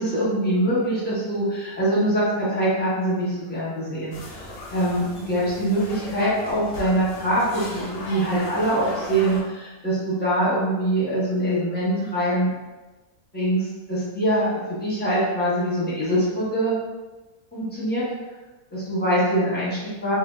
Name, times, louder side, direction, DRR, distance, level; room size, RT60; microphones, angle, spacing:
voice 1, 0.0-12.5 13.3-16.8 17.5-18.1 18.7-20.1, right 1 dB, 10° left, -9 dB, 0.4 m, -24 dB
sound 1, 4.1-9.4, left 1 dB, 65° left, 0.6 m, -37 dB
2.6 x 2.1 x 2.2 m, 1.2 s
omnidirectional pair, 1.5 m